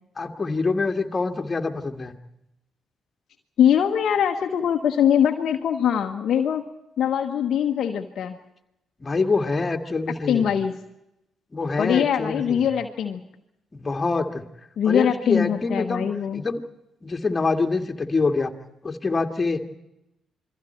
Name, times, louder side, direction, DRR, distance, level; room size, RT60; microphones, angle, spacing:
voice 1, 0.2-2.1 9.0-10.5 11.5-12.7 13.7-14.4 14.9-16.1 16.3-16.6 17.0-18.5 18.8-19.6, left 3 dB, 30° left, 4 dB, 2.1 m, -25 dB
voice 2, 3.6-6.6 7.0-8.4 10.3-10.7 11.8-13.2 14.8-16.4, left 9 dB, 60° left, 4 dB, 1.2 m, -22 dB
28.0 x 22.5 x 4.5 m, 0.87 s
hypercardioid pair, 45°, 0 cm